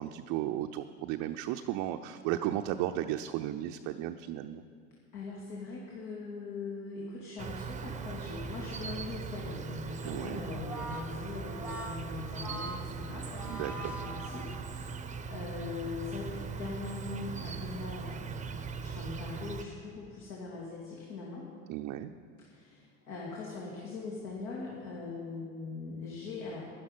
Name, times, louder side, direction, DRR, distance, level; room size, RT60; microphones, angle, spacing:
voice 1, 0.0-4.6 10.0-10.4 13.4-13.9 21.7-22.1, right 13 dB, 50° right, 6 dB, 0.6 m, -34 dB
voice 2, 5.1-21.5 22.4-26.6, left 4 dB, 60° left, -4 dB, 2.7 m, -41 dB
Insect, 7.4-19.6, right 5 dB, 20° right, 0.9 m, -40 dB
Brass instrument, 10.4-14.9, right 1 dB, 5° right, 1.5 m, -43 dB
11.5 x 11.0 x 5.7 m, 2.2 s
hypercardioid pair, 90°, 38 cm